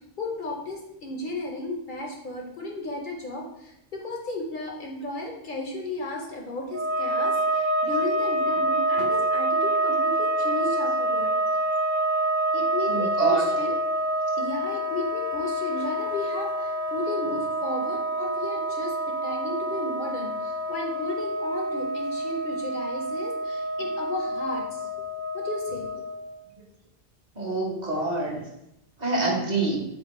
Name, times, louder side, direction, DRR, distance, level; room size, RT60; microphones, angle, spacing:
voice 1, 0.2-11.3 12.5-13.7 14.4-19.0 19.2-25.0 25.3-26.0, left 1 dB, 55° left, 1 dB, 0.7 m, -34 dB
sound 1, 6.7-26.3, right 1 dB, 25° right, 0.4 m, -27 dB
voice 2, 12.9-13.5 27.3-28.4 29.0-29.8, right 3 dB, 40° right, -3 dB, 1.0 m, -26 dB
4.4 x 2.7 x 4.0 m, 0.82 s
omnidirectional pair, 1.1 m